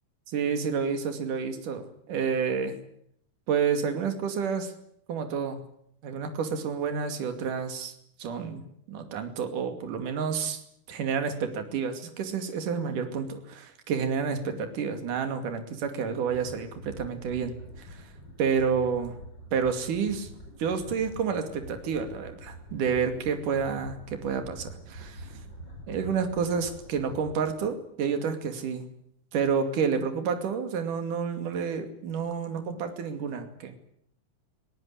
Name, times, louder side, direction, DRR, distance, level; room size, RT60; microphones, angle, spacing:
voice 1, 0.3-2.8 3.5-4.7 5.1-5.6 6.0-7.9 8.2-10.6 10.9-18.1 18.4-19.2 19.5-20.3 20.6-25.3 25.9-28.9 29.3-33.8, right 6 dB, 65° right, 7 dB, 3.9 m, -29 dB
sound 1, 16.2-27.7, right 1 dB, 30° left, 8.4 m, -45 dB
21.5 x 18.0 x 10.0 m, 0.70 s
omnidirectional pair, 4.1 m